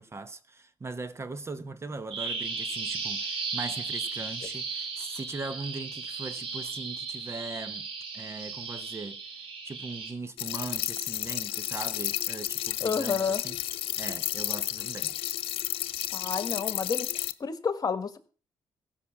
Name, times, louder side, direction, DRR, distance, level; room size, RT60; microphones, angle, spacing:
voice 1, 0.0-7.9 8.1-9.2 9.6-13.6 13.9-15.1 15.7-15.8, right 3 dB, 30° right, 0.9 m, -39 dB
Bird vocalization bird call bird song, 2.1-10.1, right 4 dB, 80° right, 2.8 m, -35 dB
sound 1, 10.4-17.3, left 13 dB, 85° left, 0.6 m, -32 dB
voice 2, 12.8-13.4 16.1-17.1 17.4-18.2, left 6 dB, 45° left, 1.5 m, -29 dB
15.5 x 5.9 x 7.0 m
cardioid pair, 90°, 9 cm